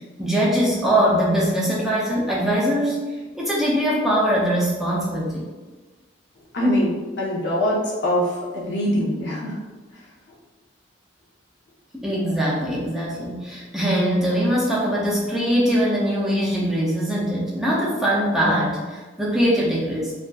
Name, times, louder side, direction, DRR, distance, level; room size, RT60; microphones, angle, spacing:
voice 1, 0.2-3.0 3.3-5.5 11.9-20.1, equal, ahead, -6 dB, 0.4 m, -22 dB
voice 2, 6.5-9.6, equal, 65° left, -5 dB, 0.7 m, -23 dB
2.5 x 2.3 x 2.2 m, 1.3 s
head